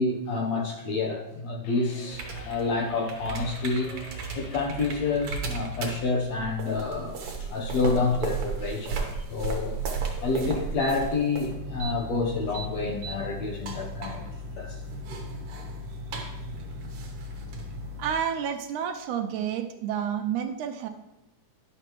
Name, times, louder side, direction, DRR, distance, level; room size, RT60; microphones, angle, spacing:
voice 1, 0.0-3.9 4.4-9.0 9.3-9.7 10.2-14.2 14.6-14.8, left 3 dB, 70° left, 0 dB, 1.9 m, -28 dB
sound 1, 1.6-5.3, left 6 dB, 85° left, 2.4 m, -48 dB
sound 2, 2.1-18.2, right 3 dB, 60° right, 1.7 m, -35 dB
voice 2, 18.0-20.9, right 8 dB, 80° right, 7 dB, 1.9 m, -30 dB
10.5 x 6.8 x 3.0 m, 0.95 s
omnidirectional pair, 3.6 m